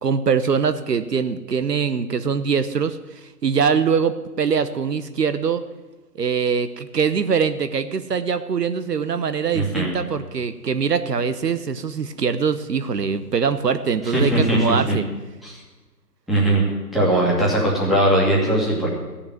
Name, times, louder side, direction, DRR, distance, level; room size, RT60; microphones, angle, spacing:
voice 1, 0.0-5.6 6.2-15.1, right 6 dB, 70° right, 11 dB, 1.0 m, -23 dB
voice 2, 9.5-9.9 14.1-14.7 15.4-15.5 16.3-16.7 16.9-18.9, right 1 dB, ahead, -6 dB, 2.0 m, -19 dB
15.0 x 7.0 x 9.2 m, 1.2 s
figure-of-eight pair, 145°, 50 cm